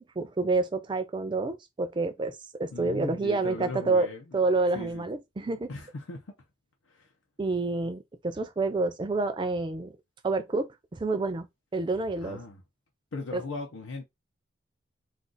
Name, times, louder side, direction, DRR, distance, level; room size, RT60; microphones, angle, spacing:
voice 1, 0.2-4.1 4.3-5.7 7.4-10.0 10.2-11.5 11.7-12.4 13.3-13.4, right 3 dB, 25° right, 0.4 m, -28 dB
voice 2, 2.7-4.4 4.7-5.1 5.7-6.3 6.9-7.1 12.2-12.6 13.1-14.1, left 2 dB, 90° left, 0.7 m, -39 dB
2.5 x 2.3 x 3.8 m
head